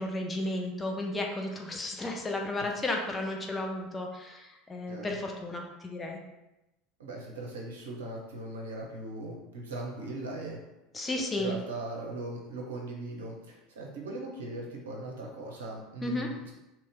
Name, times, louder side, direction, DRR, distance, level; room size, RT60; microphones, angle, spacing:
voice 1, 0.0-6.2 10.9-11.6 16.0-16.3, left 2 dB, 20° left, 1 dB, 0.5 m, -33 dB
voice 2, 7.0-10.6 11.4-16.5, right 2 dB, 70° right, -1 dB, 0.7 m, -39 dB
3.0 x 2.8 x 3.4 m, 0.98 s
figure-of-eight pair, 75°, 0 cm